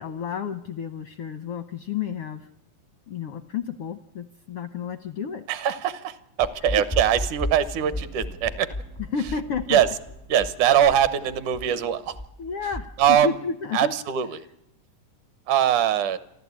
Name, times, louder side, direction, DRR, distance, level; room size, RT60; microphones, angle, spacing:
voice 1, 0.0-2.5 3.1-5.4 6.7-6.8 9.0-9.8 12.4-13.9, left 6 dB, 75° left, 10 dB, 1.3 m, -31 dB
voice 2, 5.5-8.7 9.7-9.9 10.3-12.1 13.0-13.3 13.7-14.4 15.5-16.2, right 10 dB, 75° right, 14 dB, 2.4 m, -22 dB
sound 1, 6.4-13.2, left 1 dB, 25° left, 0.4 m, -34 dB
sound 2, 7.7-11.7, right 2 dB, 90° right, 5.8 m, -49 dB
28.5 x 11.5 x 8.5 m, 0.82 s
omnidirectional pair, 3.8 m